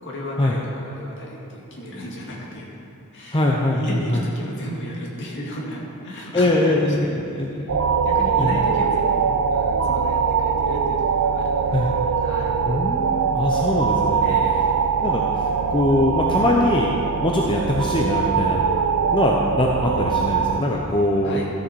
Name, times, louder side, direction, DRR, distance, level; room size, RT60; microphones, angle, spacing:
voice 1, 0.0-2.7 3.1-3.4 3.7-6.7 7.0-7.4 8.0-9.3 9.5-11.8 12.2-12.6 14.2-14.6 21.2-21.5, equal, 55° left, -3 dB, 1.9 m, -34 dB
voice 2, 3.3-4.2 6.3-7.1 7.4-7.7 8.4-8.6 11.7-11.9 12.7-14.2 15.0-16.9 17.2-18.6 19.1-21.4, left 1 dB, 20° left, -1 dB, 0.6 m, -22 dB
sound 1, 7.7-20.6, right 6 dB, 75° right, 0.5 m, -22 dB
13.5 x 7.0 x 4.6 m, 2.8 s
head